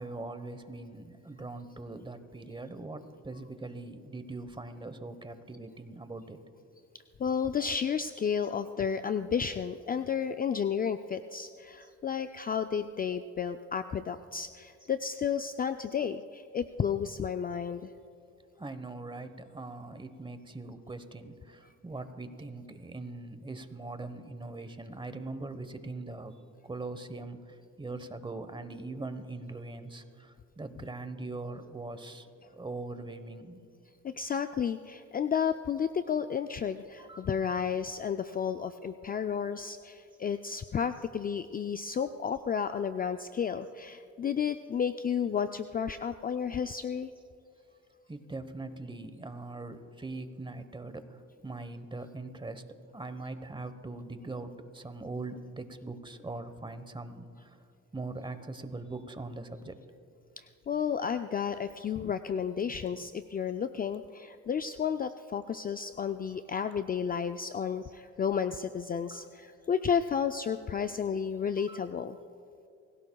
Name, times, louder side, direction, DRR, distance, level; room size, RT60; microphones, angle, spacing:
voice 1, 0.0-6.4 18.6-26.3 26.6-33.6 37.0-37.3 46.4-46.5 48.1-52.6 52.9-57.6 57.9-59.8 69.1-69.2 71.6-71.8, right 2 dB, 15° right, 10 dB, 1.0 m, -41 dB
voice 2, 7.2-17.9 34.0-47.1 60.4-72.2, left 7 dB, 30° left, 9 dB, 0.4 m, -32 dB
25.5 x 17.0 x 2.3 m, 2.6 s
cardioid pair, 90°, 30 cm